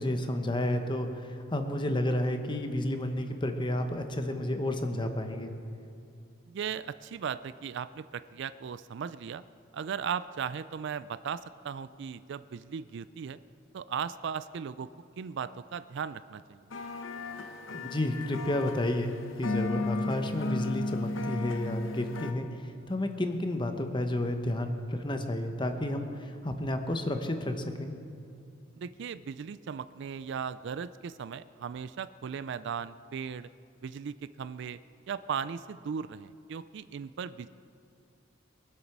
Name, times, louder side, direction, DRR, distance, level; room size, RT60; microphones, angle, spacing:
voice 1, 0.0-5.5 17.8-22.5 22.9-27.9, left 1 dB, 25° left, 6 dB, 1.0 m, -31 dB
voice 2, 6.5-9.4 9.7-13.4 13.7-14.9 15.2-16.6 28.8-33.5 33.8-34.8 35.1-37.5, right 7 dB, 60° right, 15 dB, 0.4 m, -37 dB
sound 1, 16.7-22.3, left 2 dB, 75° left, 0.9 m, -35 dB
22.5 x 8.2 x 6.0 m, 2.5 s
head